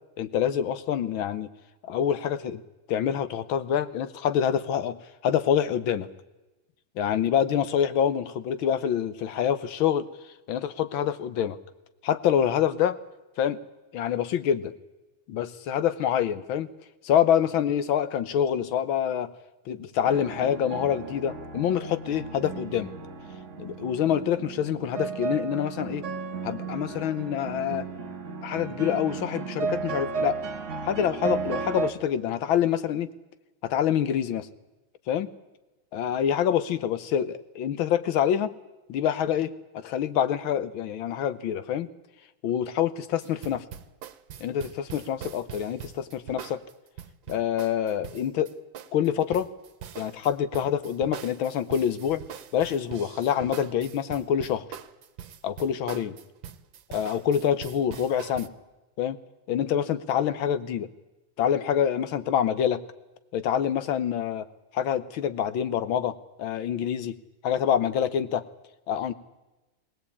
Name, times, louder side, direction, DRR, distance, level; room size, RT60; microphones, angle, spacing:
voice 1, 0.2-1.5 1.8-2.6 2.9-5.0 5.2-6.1 7.0-10.1 10.5-11.6 12.0-13.0 13.4-13.6 13.9-14.7 15.3-16.7 17.0-19.3 19.7-22.9 23.6-26.1 26.4-27.9 28.4-30.4 30.7-33.1 33.6-34.5 35.1-35.3 35.9-38.5 38.9-41.9 42.4-43.6 44.4-46.6 47.3-48.5 48.9-49.5 50.0-52.2 52.5-54.7 55.4-56.2 56.9-58.5 59.0-59.2 59.5-60.9 61.4-62.8 63.3-64.5 64.7-67.2 67.4-68.4 68.9-69.1, left 9 dB, 85° left, 13 dB, 1.8 m, -26 dB
sound 1, 20.0-31.9, right 4 dB, 45° right, 1.3 m, -34 dB
sound 2, 43.2-58.5, right 9 dB, 75° right, 1.7 m, -42 dB
20.0 x 19.0 x 8.5 m, 1.1 s
omnidirectional pair, 2.1 m